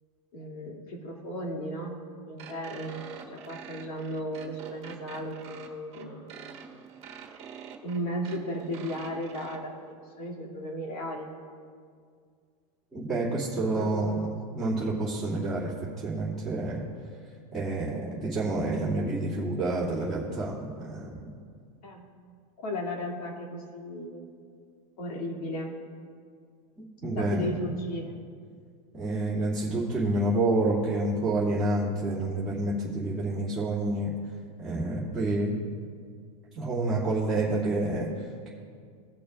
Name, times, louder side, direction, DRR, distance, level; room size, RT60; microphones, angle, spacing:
voice 1, 0.3-2.0 2.3-6.3 7.8-11.3 13.7-14.3 21.8-22.1 22.6-24.3 25.0-25.8 27.1-28.2, equal, 75° left, -1 dB, 2.7 m, -35 dB
sound 1, 2.4-9.6, right 7 dB, 30° right, 1.5 m, -46 dB
voice 2, 12.9-14.3 14.5-16.8 17.5-21.3 26.8-27.6 28.9-34.1 34.6-35.6 36.5-38.5, right 2 dB, ahead, -12 dB, 2.5 m, -28 dB
20.0 x 6.8 x 2.5 m, 2.1 s
supercardioid pair, 145°, 20 cm